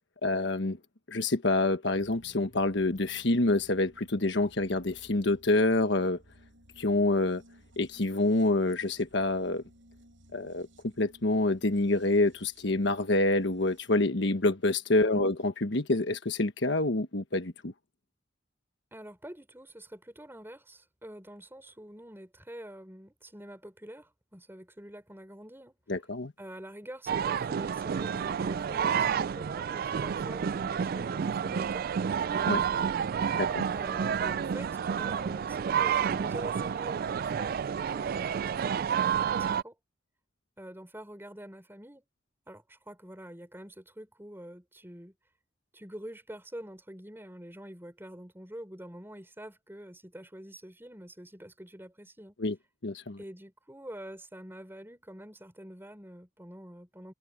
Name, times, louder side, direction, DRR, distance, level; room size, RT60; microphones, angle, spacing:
voice 1, 0.2-0.8 1.1-6.2 6.8-7.4 7.8-9.6 10.3-10.7 11.0-17.7 25.9-26.3 32.5-32.6 33.4-33.6 52.4-52.5 52.8-53.2, left 2 dB, 65° left, 1.4 m, -27 dB
sound 1, 1.9-13.9, equal, 80° right, 7.0 m, -59 dB
voice 2, 18.9-25.8 26.4-32.0 32.2-32.8 33.7-37.6 37.9-38.9 39.3-39.8 40.6-42.0 42.5-45.1 45.7-52.4 53.2-57.1, right 1 dB, 10° right, 5.4 m, -46 dB
sound 2, 27.1-39.6, right 7 dB, 50° right, 0.3 m, -30 dB
head